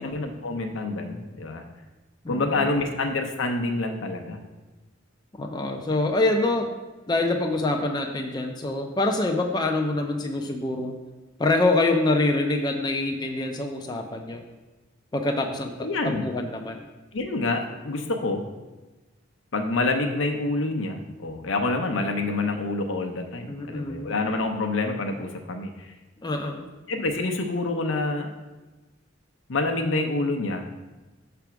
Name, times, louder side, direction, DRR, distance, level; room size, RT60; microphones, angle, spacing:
voice 1, 0.0-1.6 2.3-4.4 15.8-16.2 17.1-18.4 19.5-25.9 26.9-28.3 29.5-30.6, left 2 dB, 75° left, 4 dB, 0.7 m, -27 dB
voice 2, 2.2-2.8 5.3-6.7 7.1-11.0 11.4-14.4 15.1-16.8 23.5-24.1 26.2-26.7, left 2 dB, 20° left, 3 dB, 0.5 m, -25 dB
6.0 x 3.4 x 5.9 m, 1.2 s
head